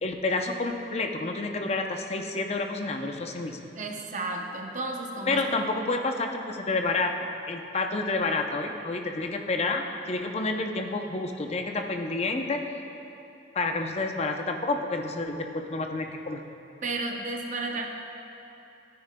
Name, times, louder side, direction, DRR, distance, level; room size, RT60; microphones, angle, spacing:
voice 1, 0.0-3.6 5.3-7.1 7.5-12.6 13.5-16.4, left 3 dB, 35° left, 4 dB, 0.5 m, -29 dB
voice 2, 3.8-5.5 16.8-17.9, right 2 dB, 45° right, 2 dB, 0.7 m, -33 dB
12.5 x 9.4 x 2.2 m, 3.0 s
head